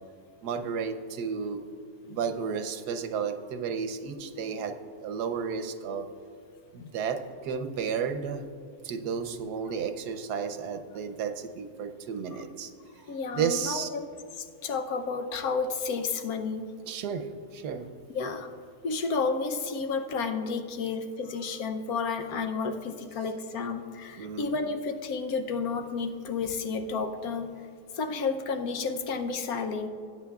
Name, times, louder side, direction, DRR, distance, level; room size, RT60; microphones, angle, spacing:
voice 1, 0.4-1.7 2.1-6.1 6.7-8.5 8.8-12.7 13.3-13.9 16.8-17.9 24.2-24.5, right 6 dB, 85° right, 7 dB, 1.3 m, -32 dB
voice 2, 13.1-14.1 14.4-16.7 18.1-18.5 18.8-27.5 27.9-29.9, left 4 dB, 70° left, 6 dB, 1.2 m, -31 dB
19.5 x 8.7 x 2.3 m, 2.4 s
omnidirectional pair, 1.7 m